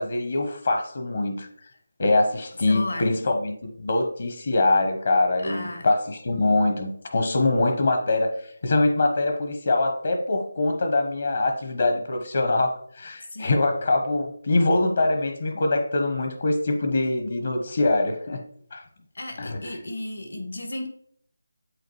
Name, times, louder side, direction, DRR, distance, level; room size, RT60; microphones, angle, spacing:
voice 1, 0.0-1.5 2.0-8.3 8.6-18.4 18.7-18.8 19.4-19.6, left 2 dB, 50° left, 1.0 m, -23 dB
voice 2, 2.7-3.1 5.4-5.9 13.3-13.6 19.1-20.9, left 2 dB, 70° left, 1.4 m, -34 dB
8.2 x 3.7 x 3.2 m
figure-of-eight pair, 165°, 0 cm